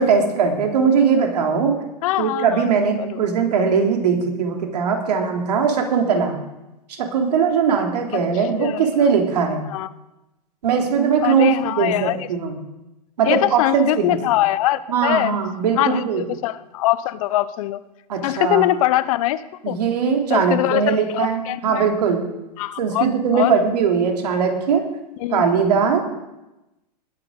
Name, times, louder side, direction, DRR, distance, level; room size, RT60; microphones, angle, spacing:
voice 1, 0.0-1.7 2.2-6.4 7.0-9.6 10.6-12.6 13.2-14.2 14.9-16.2 18.1-18.7 19.6-22.2 22.8-24.8 25.3-26.0, right 6 dB, 70° right, 3 dB, 3.5 m, -20 dB
voice 2, 2.0-2.7 3.0-3.2 8.1-8.2 8.6-8.8 9.7-9.9 11.2-12.3 13.2-15.4 15.8-17.8 18.2-19.8 20.3-21.9 22.6-23.1 23.3-23.5 25.2-25.4, left 15 dB, 55° left, 16 dB, 0.8 m, -22 dB
19.5 x 8.8 x 6.5 m, 0.99 s
hypercardioid pair, 115°, 21 cm